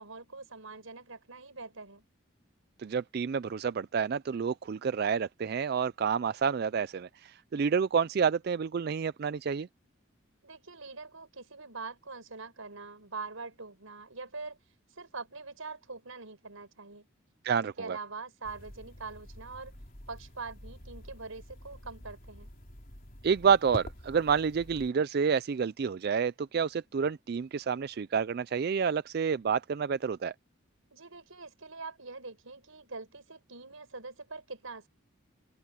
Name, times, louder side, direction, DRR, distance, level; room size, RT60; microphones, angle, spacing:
voice 1, 0.0-2.0 10.4-14.6 14.9-17.1 17.6-19.7 20.1-22.5 30.9-34.9, right 4 dB, 90° right, 5.1 m, -44 dB
voice 2, 2.8-9.7 17.4-18.0 23.2-30.3, right 6 dB, 50° right, 0.3 m, -29 dB
sound 1, 18.4-24.9, equal, 40° left, 3.8 m, -47 dB
open air
head